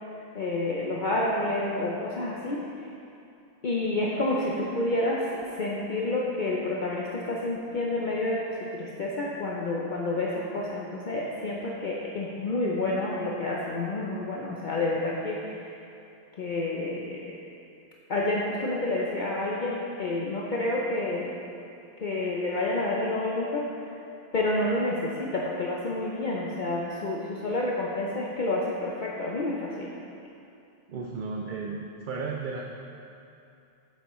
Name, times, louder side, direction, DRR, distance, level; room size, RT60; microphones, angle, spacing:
voice 1, 0.3-2.6 3.6-15.4 16.4-17.2 18.1-21.3 22.0-23.6 24.3-29.9, left 2 dB, 50° left, -4 dB, 0.7 m, -29 dB
voice 2, 30.9-32.6, right 4 dB, 55° right, 0 dB, 0.6 m, -34 dB
8.1 x 7.8 x 3.1 m, 2.7 s
omnidirectional pair, 1.2 m